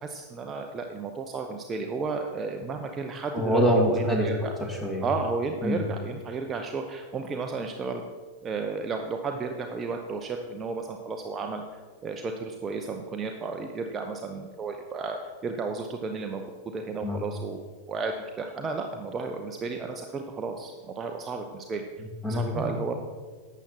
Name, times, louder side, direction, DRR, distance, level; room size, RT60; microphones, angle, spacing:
voice 1, 0.0-4.5 5.0-8.0 8.4-17.6 17.9-21.8 22.3-22.9, right 4 dB, 25° right, 4 dB, 0.7 m, -33 dB
voice 2, 3.3-4.3 4.6-5.1 5.6-5.8 17.0-17.2 22.0-22.7, equal, 10° left, 0 dB, 2.3 m, -25 dB
11.5 x 8.1 x 4.3 m, 1.4 s
figure-of-eight pair, 90°, 0 cm